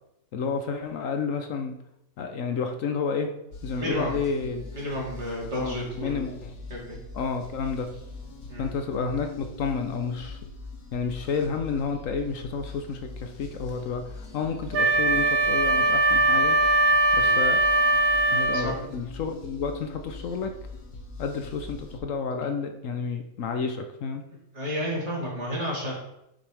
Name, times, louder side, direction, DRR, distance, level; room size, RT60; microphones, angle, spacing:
voice 1, 0.3-1.8 2.2-3.3 3.6-4.6 5.5-6.5 7.1-7.9 8.6-10.4 10.9-16.6 17.1-17.6 18.3-20.5 21.2-24.2, left 5 dB, 65° left, 6 dB, 1.0 m, -30 dB
sound 1, 3.5-22.0, left 2 dB, 85° left, 1.5 m, -42 dB
voice 2, 3.8-4.2 4.7-6.3 6.7-7.0 8.5-8.7 17.2-17.4 18.5-18.7 24.5-25.9, equal, 50° right, -4 dB, 2.7 m, -31 dB
Wind instrument woodwind instrument, 14.7-18.7, right 2 dB, 70° right, 1.3 m, -21 dB
8.4 x 6.0 x 3.4 m, 0.85 s
omnidirectional pair, 1.5 m